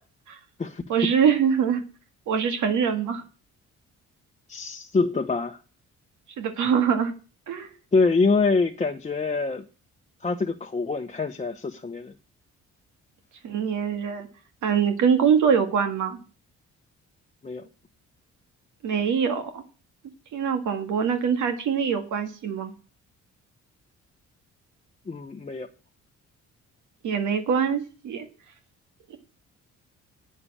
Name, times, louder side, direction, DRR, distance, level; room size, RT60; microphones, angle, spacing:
voice 1, 0.9-1.8 2.3-3.2 6.4-7.1 7.5-7.7 13.4-14.3 14.6-16.2 18.8-19.6 20.3-22.7 27.0-28.3 29.1-29.2, right 7 dB, 75° right, 1.8 m, -23 dB
voice 2, 4.5-5.6 7.9-9.6 10.2-12.1 17.4-17.6 25.1-25.7, left 4 dB, 25° left, 0.9 m, -25 dB
8.8 x 6.9 x 8.5 m
cardioid pair, 90°, 30 cm